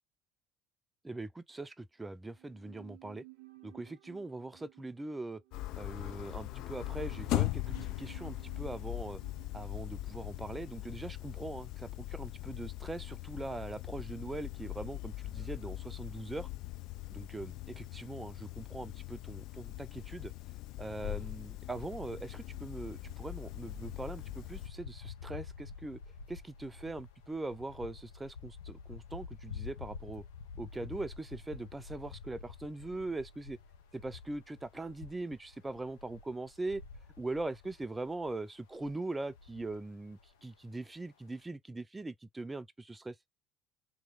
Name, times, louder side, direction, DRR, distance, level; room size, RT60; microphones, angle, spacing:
voice 1, 1.0-3.2 3.6-5.4 5.8-9.2 9.5-16.5 17.1-20.3 20.8-26.0 26.3-30.2 30.6-33.6 33.9-36.8 37.2-43.2, right 2 dB, 15° right, 0.4 m, -41 dB
sound 1, 2.3-11.7 11.9-12.0, right 23 dB, 80° right, 0.4 m, -57 dB
sound 2, 5.5-24.7, left 18 dB, 65° left, 0.3 m, -40 dB
sound 3, 21.7-41.0, left 5 dB, 85° left, 0.8 m, -49 dB
3.0 x 2.7 x 3.7 m
hypercardioid pair, 65°, 0 cm